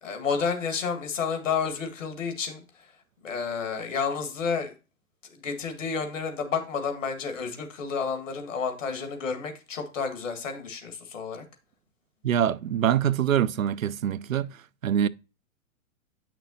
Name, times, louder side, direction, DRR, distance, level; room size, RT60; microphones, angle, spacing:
voice 1, 0.0-2.9 3.2-4.7 5.3-11.4, left 5 dB, 60° left, 2.0 m, -30 dB
voice 2, 12.2-14.5 14.8-15.1, right 9 dB, 70° right, 0.5 m, -24 dB
9.3 x 6.0 x 2.8 m
figure-of-eight pair, 110°, 42 cm